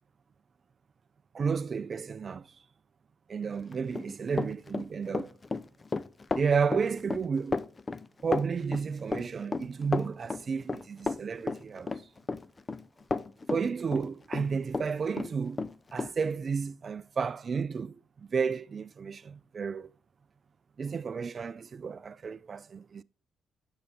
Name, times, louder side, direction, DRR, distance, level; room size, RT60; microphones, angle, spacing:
voice 1, 1.3-2.5 3.3-5.3 6.4-7.6 8.2-11.9 13.5-15.6 15.9-19.9 20.8-23.0, right 5 dB, 45° right, 0.4 m, -32 dB
Run, 3.7-14.9 15.2-16.1, left 3 dB, 25° left, 0.4 m, -33 dB
9.5 x 6.8 x 3.6 m
cardioid pair, 90°, 0 cm